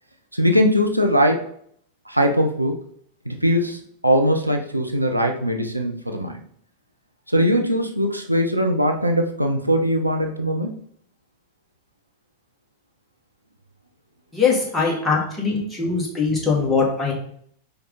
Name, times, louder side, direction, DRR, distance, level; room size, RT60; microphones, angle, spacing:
voice 1, 0.3-1.5 2.1-2.8 3.3-6.4 7.3-10.7 14.8-14.9 16.3-16.7, equal, 90° right, 3 dB, 0.7 m, -21 dB
voice 2, 14.3-17.1, left 4 dB, 10° left, -4 dB, 2.2 m, -21 dB
5.2 x 4.6 x 3.9 m, 0.63 s
figure-of-eight pair, 90°, 0 cm